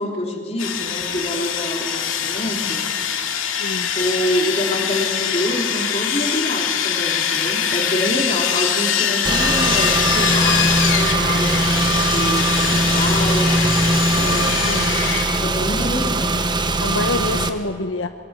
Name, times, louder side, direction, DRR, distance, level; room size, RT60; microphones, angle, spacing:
voice 1, 0.0-2.9 3.9-12.5 12.7-13.8 14.1-14.5 15.4-16.5 17.3-17.5, left 1 dB, 30° left, 0 dB, 3.5 m, -26 dB
Sawing, 0.6-15.3, left 8 dB, 90° left, 2.6 m, -23 dB
voice 2, 3.6-3.9 7.5-7.7 14.1-15.3 16.8-18.1, left 2 dB, 75° left, 7 dB, 0.9 m, -28 dB
Car / Engine, 9.2-17.5, right 2 dB, 20° right, 1.0 m, -20 dB
24.5 x 22.0 x 8.2 m, 2.2 s
head